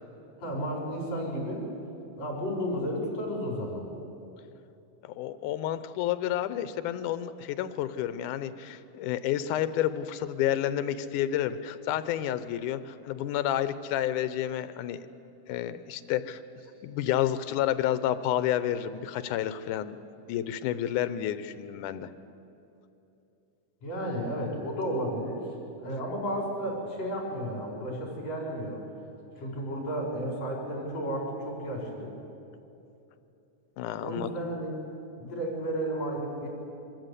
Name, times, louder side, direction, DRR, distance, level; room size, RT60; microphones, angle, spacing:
voice 1, 0.4-1.6 2.2-3.9 23.8-25.5 25.8-28.8 29.4-32.1 34.0-34.7 35.2-36.5, equal, 60° left, -2 dB, 5.4 m, -33 dB
voice 2, 5.0-15.1 15.5-16.4 16.8-20.0 20.3-22.1 33.8-34.3, left 11 dB, 85° left, 13 dB, 2.2 m, -30 dB
24.0 x 13.0 x 8.1 m, 2.9 s
omnidirectional pair, 3.5 m